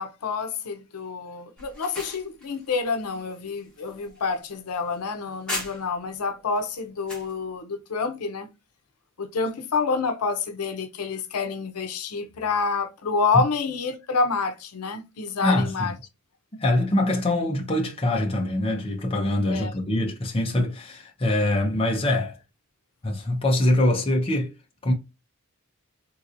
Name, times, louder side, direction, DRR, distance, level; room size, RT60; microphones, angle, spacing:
voice 1, 0.0-8.5 9.2-15.9 19.5-19.7, left 4 dB, 85° left, 0.6 m, -28 dB
sound 1, 1.6-6.1 6.5-7.3, left 1 dB, 5° left, 1.4 m, -39 dB
voice 2, 15.4-15.9 16.5-22.4 23.0-24.5 24.8-24.9, left 1 dB, 25° left, 0.7 m, -24 dB
3.8 x 2.9 x 2.5 m
head